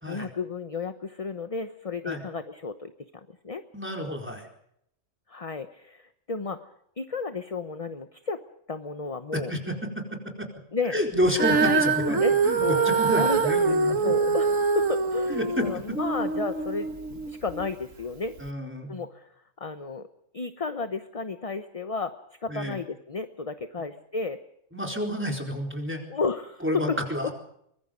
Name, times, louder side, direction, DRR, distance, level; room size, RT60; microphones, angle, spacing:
voice 1, 0.1-3.6 5.3-6.6 7.0-8.4 8.7-9.5 10.7-11.0 11.5-13.8 14.0-16.9 17.3-18.4 18.9-19.3 19.6-20.1 20.3-22.1 22.4-24.4 26.1-27.0 27.2-27.3, left 4 dB, 30° left, 10 dB, 1.0 m, -32 dB
voice 2, 3.7-4.5 9.3-10.5 10.9-12.2 12.4-14.4 15.3-16.0 18.4-19.0 22.5-22.8 24.7-26.0 26.6-27.3, equal, 10° right, 3 dB, 4.3 m, -30 dB
Female singing, 11.3-17.7 18.4-18.5, right 4 dB, 80° right, 1.9 m, -24 dB
24.0 x 22.5 x 5.3 m, 0.74 s
omnidirectional pair, 1.3 m